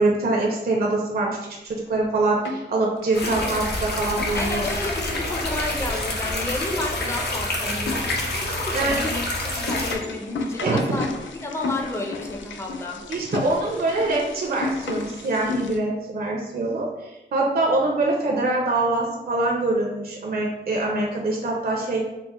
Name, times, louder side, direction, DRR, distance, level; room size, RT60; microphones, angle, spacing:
voice 1, 0.0-1.4 1.6-4.6 8.7-9.0 10.6-11.0 13.1-22.1, right 2 dB, 55° right, -1 dB, 0.6 m, -24 dB
sound 1, 1.9-2.7 3.0-15.8, left 3 dB, 90° left, 0.4 m, -35 dB
sound 2, 3.1-9.9, left 1 dB, 60° left, 0.7 m, -27 dB
voice 2, 4.3-8.3 8.6-13.0, left 2 dB, 15° left, 1 dB, 0.6 m, -31 dB
4.4 x 2.1 x 3.0 m, 0.98 s
wide cardioid pair, 75°, 19 cm